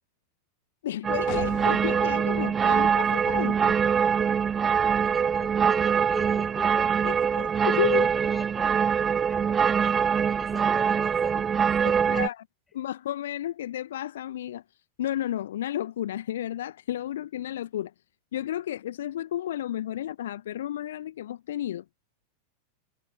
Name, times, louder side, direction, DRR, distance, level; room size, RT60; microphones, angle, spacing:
voice 1, 0.8-3.7 7.0-8.1 12.1-12.4 12.7-14.6 15.0-17.9 18.3-21.8, left 12 dB, 60° left, 1.0 m, -32 dB
sound 1, 1.0-12.3, right 7 dB, 20° right, 0.5 m, -24 dB
sound 2, 1.3-6.8, left 31 dB, 45° left, 1.6 m, -44 dB
voice 2, 4.6-7.3 7.7-12.3 12.8-13.0, left 4 dB, 15° left, 4.4 m, -43 dB
figure-of-eight pair, 90°, 0 cm